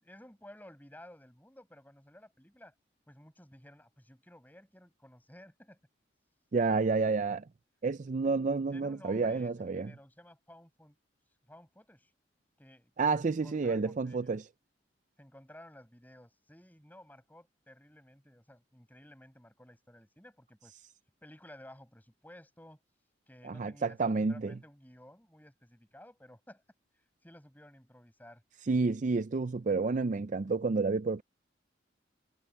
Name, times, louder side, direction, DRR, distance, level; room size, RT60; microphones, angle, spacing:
voice 1, 0.0-2.7 3.1-5.8 8.7-10.9 11.5-12.1 12.6-14.3 15.2-20.7 21.2-22.8 23.3-26.6 27.2-28.4, left 1 dB, 10° left, 7.9 m, -55 dB
voice 2, 6.5-7.4 7.8-9.9 13.0-14.5 23.4-24.5 28.7-31.2, right 4 dB, 40° right, 0.4 m, -30 dB
head